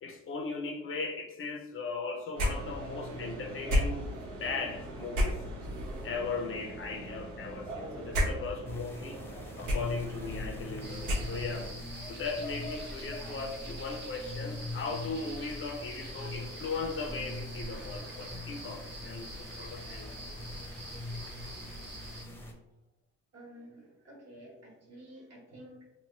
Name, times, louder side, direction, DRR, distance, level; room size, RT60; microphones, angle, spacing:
voice 1, 0.0-5.4 6.0-9.2 9.6-11.7 12.1-20.6, left 4 dB, 45° left, 0.6 m, -38 dB
sound 1, 2.3-11.7, equal, 85° right, 1.1 m, -35 dB
sound 2, 8.7-22.5, left 2 dB, 10° left, 0.7 m, -43 dB
sound 3, 10.8-22.2, right 1 dB, 35° right, 1.0 m, -45 dB
voice 2, 23.3-26.0, right 1 dB, 55° right, 1.5 m, -51 dB
3.1 x 2.5 x 3.1 m
cardioid pair, 90°, 30 cm